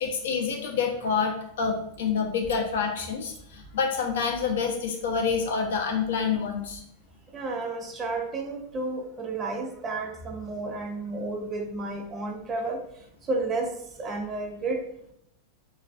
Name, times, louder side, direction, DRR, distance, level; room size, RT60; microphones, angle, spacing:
voice 1, 0.0-6.8, left 5 dB, 80° left, 2 dB, 0.5 m, -27 dB
voice 2, 7.3-12.8 13.3-13.7 14.0-14.8, right 3 dB, 20° right, 3 dB, 0.3 m, -31 dB
2.3 x 2.2 x 2.4 m, 0.74 s
supercardioid pair, 165°, 0 cm